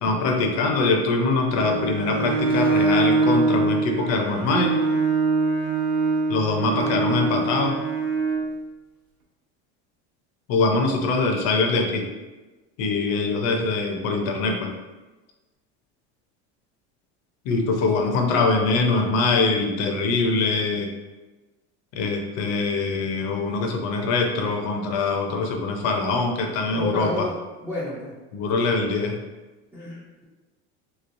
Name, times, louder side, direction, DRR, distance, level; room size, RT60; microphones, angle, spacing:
voice 1, 0.0-4.8 6.3-7.8 10.5-12.1 12.8-14.7 17.4-20.9 21.9-27.3 28.3-29.2, left 3 dB, 50° left, 3 dB, 0.6 m, -23 dB
Bowed string instrument, 1.5-8.5, right 3 dB, 75° right, 0.8 m, -23 dB
voice 2, 17.6-18.3 26.7-28.1 29.7-30.2, left 1 dB, 5° right, -9 dB, 0.3 m, -33 dB
3.2 x 3.1 x 2.5 m, 1.2 s
supercardioid pair, 145°, 35 cm